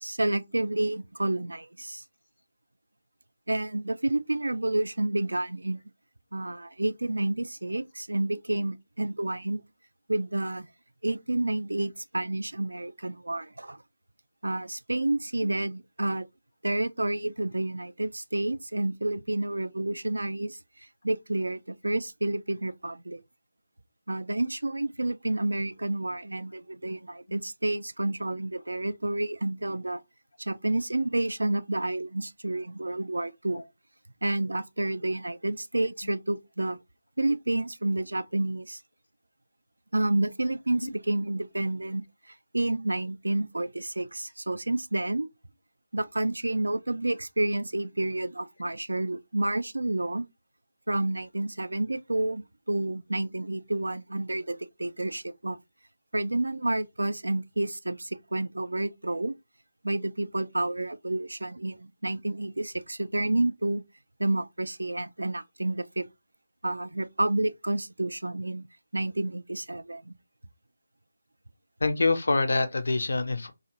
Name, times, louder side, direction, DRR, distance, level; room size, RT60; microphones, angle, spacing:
voice 1, 0.0-2.0 3.5-5.8 6.3-9.6 10.1-10.7 11.0-13.8 14.4-16.3 16.6-20.6 21.0-23.2 24.1-30.0 30.4-33.6 34.2-36.8 37.2-38.8 39.9-45.3 45.9-50.3 50.9-55.6 56.1-59.3 59.8-63.8 64.2-66.1 66.6-68.7 68.9-70.1, right 2 dB, 70° right, 0.3 m, -29 dB
voice 2, 71.8-73.5, left 3 dB, 55° left, 0.5 m, -25 dB
2.5 x 2.4 x 2.8 m
figure-of-eight pair, 155°, 0 cm